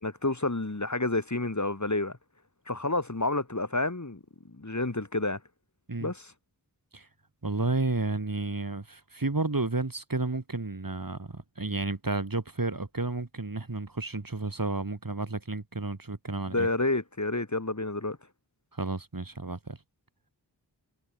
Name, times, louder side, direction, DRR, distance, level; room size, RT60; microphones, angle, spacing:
voice 1, 0.0-2.2 2.7-4.2 4.5-5.4 6.0-6.3 16.5-18.2, left 2 dB, 40° left, 3.6 m, -29 dB
voice 2, 7.4-16.7 18.7-19.8, right 3 dB, 50° right, 3.6 m, -31 dB
wide cardioid pair, 50°, 43 cm